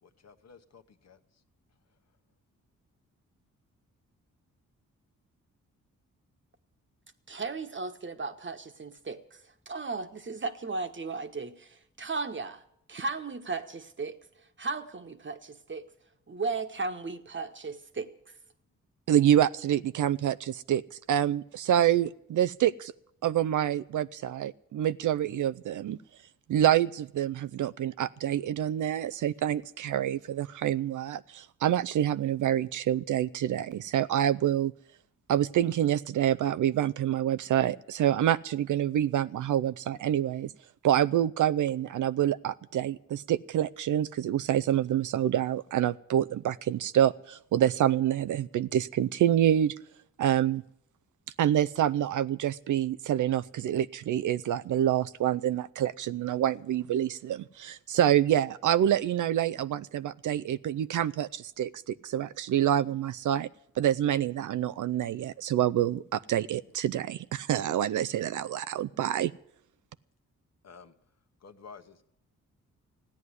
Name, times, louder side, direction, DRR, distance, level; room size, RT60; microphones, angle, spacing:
voice 1, 0.0-1.4 70.6-71.0 71.4-72.0, left 5 dB, 50° left, 8 dB, 1.1 m, -52 dB
voice 2, 7.3-12.6 12.9-15.9 16.3-18.4, right 3 dB, 35° right, 9 dB, 1.3 m, -36 dB
voice 3, 19.1-22.9 23.2-26.0 26.5-34.7 35.3-40.5 40.8-49.8 50.2-50.6 51.4-63.5 63.8-69.3, right 11 dB, 65° right, 15 dB, 0.5 m, -27 dB
15.0 x 9.6 x 9.6 m, 0.74 s
cardioid pair, 60°, 33 cm